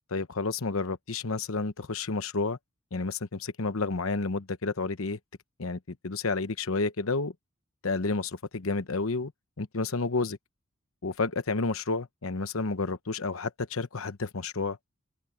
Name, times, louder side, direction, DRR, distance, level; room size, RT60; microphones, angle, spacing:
voice 1, 0.1-2.6 2.9-5.2 5.6-7.3 7.8-9.3 9.6-10.4 11.0-14.8, left 3 dB, 70° left, 1.0 m, -30 dB
open air
head